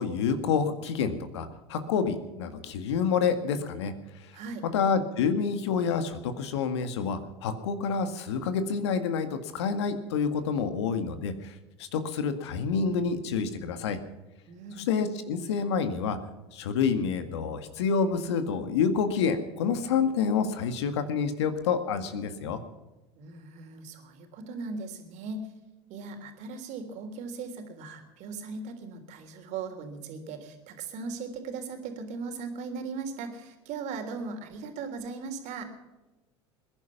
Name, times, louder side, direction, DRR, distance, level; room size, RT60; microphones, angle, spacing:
voice 1, 0.0-3.9 4.7-14.0 14.9-16.2 16.5-22.6, left 6 dB, 75° left, 9 dB, 1.9 m, -28 dB
voice 2, 4.3-4.6 14.5-14.9 23.2-25.5 25.9-35.7, right 4 dB, 55° right, 5 dB, 3.4 m, -38 dB
21.0 x 11.0 x 5.9 m, 1.1 s
hypercardioid pair, 80°, 14 cm